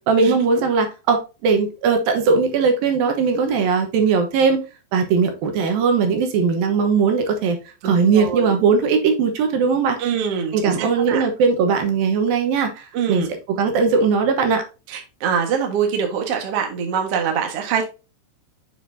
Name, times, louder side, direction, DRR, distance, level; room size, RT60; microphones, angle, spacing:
voice 1, 0.1-4.6 4.9-7.6 7.8-10.0 10.5-14.6, right 5 dB, 70° right, 5 dB, 2.4 m, -19 dB
voice 2, 7.8-8.5 10.0-11.2 12.9-13.3 14.9-17.8, right 7 dB, 90° right, 3 dB, 1.3 m, -24 dB
7.2 x 6.8 x 2.7 m, 0.30 s
omnidirectional pair, 5.2 m